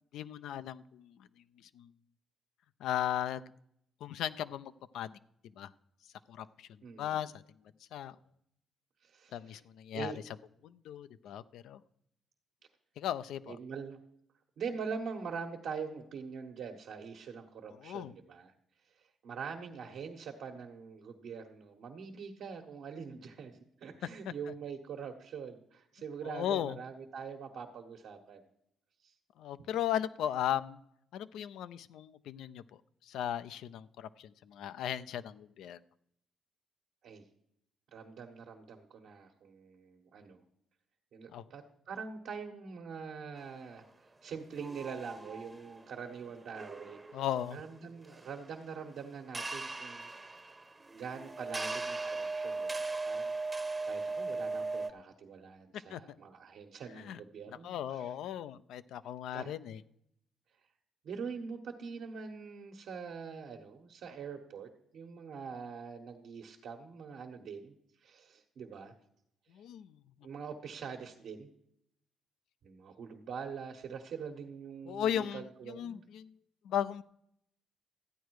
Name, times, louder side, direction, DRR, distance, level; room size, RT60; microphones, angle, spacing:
voice 1, 0.1-1.1 1.7-1.9 2.8-3.5 4.0-5.2 5.6-5.7 6.3-6.7 7.0-7.3 7.9-8.1 9.3-10.1 10.6-11.8 13.0-13.6 17.8-18.1 26.2-26.8 29.4-30.8 31.1-32.6 33.1-35.8 41.3-41.4 47.1-47.6 55.9-56.0 57.0-57.2 57.6-59.8 69.5-70.0 74.9-76.3 76.6-77.0, left 10 dB, 80° left, 14 dB, 0.5 m, -36 dB
voice 2, 6.8-7.2 9.0-9.6 9.9-10.2 13.5-14.0 14.6-18.5 18.9-28.4 29.0-29.1 37.0-37.2 37.9-40.4 41.1-43.8 44.2-47.0 47.5-50.1 50.9-58.1 59.3-59.5 61.0-68.9 70.2-71.5 72.6-76.0, right 6 dB, 70° right, 2 dB, 1.4 m, -44 dB
sound 1, 44.5-48.8 49.0-49.1 49.3-54.9, right 3 dB, 20° right, 0.8 m, -39 dB
13.5 x 9.1 x 4.8 m, 0.75 s
cardioid pair, 90°, 0 cm